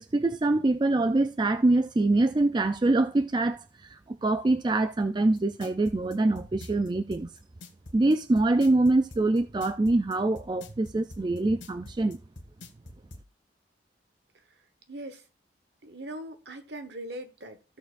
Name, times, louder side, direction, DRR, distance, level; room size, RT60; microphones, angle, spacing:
voice 1, 0.0-7.3 7.9-12.2, right 2 dB, 25° right, 0.4 m, -24 dB
sound 1, 5.4-13.3, left 2 dB, 85° left, 1.5 m, -46 dB
voice 2, 14.9-15.2 15.8-17.8, right 1 dB, 65° right, 1.3 m, -40 dB
15.5 x 6.7 x 2.5 m
head